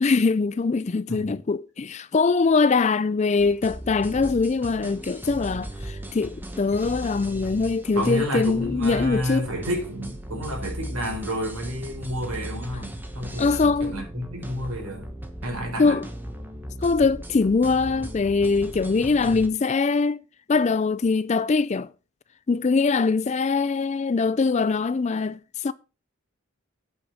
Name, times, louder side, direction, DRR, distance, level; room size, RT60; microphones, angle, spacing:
voice 1, 0.0-9.5 13.4-14.0 15.8-16.0 16.8-20.2 20.5-21.9 22.5-25.7, left 4 dB, 30° left, 0.3 m, -22 dB
sound 1, 3.4-19.5, right 1 dB, 10° right, 1.1 m, -37 dB
voice 2, 7.9-15.1 15.4-16.0, equal, 80° right, 4.4 m, -30 dB
8.7 x 5.3 x 6.3 m
head